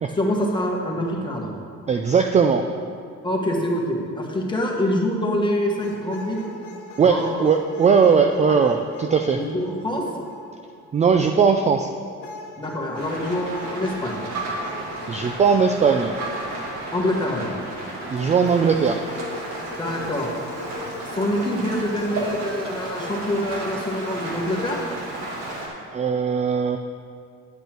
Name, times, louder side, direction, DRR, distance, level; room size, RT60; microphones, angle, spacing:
voice 1, 0.1-1.5 3.2-6.4 7.0-7.5 9.3-10.0 12.6-14.2 16.9-17.5 19.8-20.3 21.0-24.8, left 1 dB, 15° left, -1 dB, 1.4 m, -25 dB
voice 2, 1.9-2.7 7.0-9.4 10.9-11.9 15.1-16.1 18.1-19.0 25.9-26.8, right 6 dB, 25° right, 5 dB, 0.3 m, -19 dB
sound 1, 5.8-10.9 12.2-17.7 18.4-23.4 24.0-24.8, left 3 dB, 75° left, 1.4 m, -40 dB
Rain, 13.0-25.7, right 2 dB, 65° right, 2.1 m, -33 dB
10.5 x 8.0 x 4.5 m, 2.2 s
cardioid pair, 140°, 29 cm